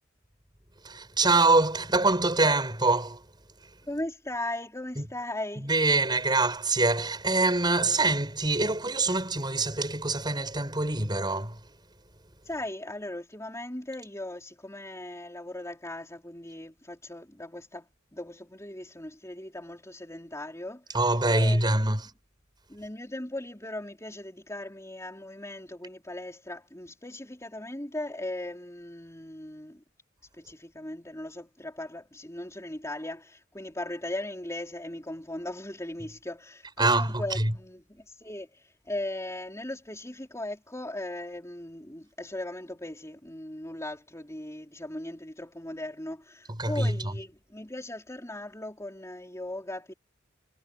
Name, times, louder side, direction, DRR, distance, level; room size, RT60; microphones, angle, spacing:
voice 1, 0.8-3.2 5.0-5.1 5.6-11.6 20.9-22.0 36.8-37.5 46.5-46.9, right 2 dB, 20° right, 6.8 m, -25 dB
voice 2, 3.9-5.7 12.4-21.0 21.3-22.0 22.7-29.8 30.4-49.9, left 1 dB, 15° left, 4.2 m, -38 dB
head